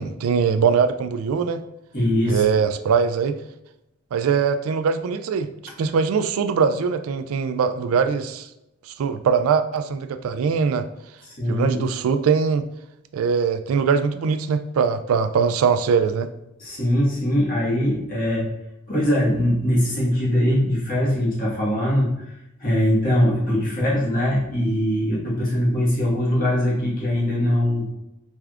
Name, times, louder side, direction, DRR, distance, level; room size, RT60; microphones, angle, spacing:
voice 1, 0.0-1.6 2.3-3.4 4.1-5.5 5.8-8.5 9.0-10.8 11.5-12.6 13.1-16.3, right 6 dB, 80° right, 10 dB, 0.3 m, -21 dB
voice 2, 1.9-2.4 11.2-11.8 16.6-18.5 18.9-22.3 22.6-27.9, equal, 45° left, -5 dB, 1.5 m, -21 dB
4.4 x 3.4 x 2.4 m, 0.88 s
head